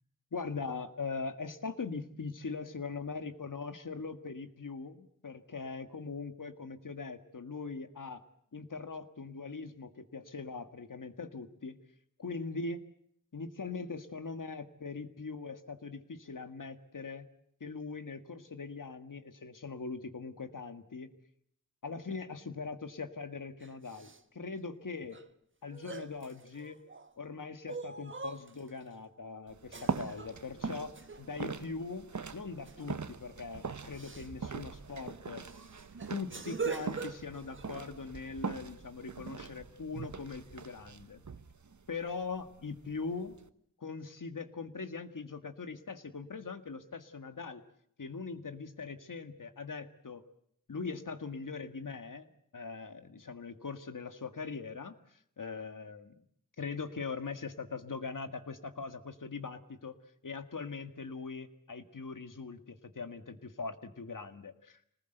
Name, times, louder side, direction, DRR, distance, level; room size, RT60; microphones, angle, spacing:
voice 1, 0.3-8.2 8.5-11.8 12.2-12.8 13.3-17.3 17.6-21.1 21.8-25.2 25.6-26.8 27.2-32.1 32.3-35.4 36.1-41.2 41.9-43.3 43.8-47.6 48.0-50.2 50.7-52.3 52.5-56.1 56.6-60.0 60.2-64.9, left 4 dB, 80° left, 9 dB, 1.8 m, -41 dB
sound 1, 23.6-24.2 25.1-25.2 25.7-27.1 27.7-28.8 29.7-30.4 30.9-31.3 32.7-32.9 33.2-33.4 33.9-34.3 34.9-35.0 35.4-37.7, right 4 dB, 40° right, 1.3 m, -42 dB
sound 2, 29.5-43.5, right 5 dB, 65° right, 1.1 m, -42 dB
26.0 x 19.5 x 8.0 m, 0.69 s
wide cardioid pair, 70°, 32 cm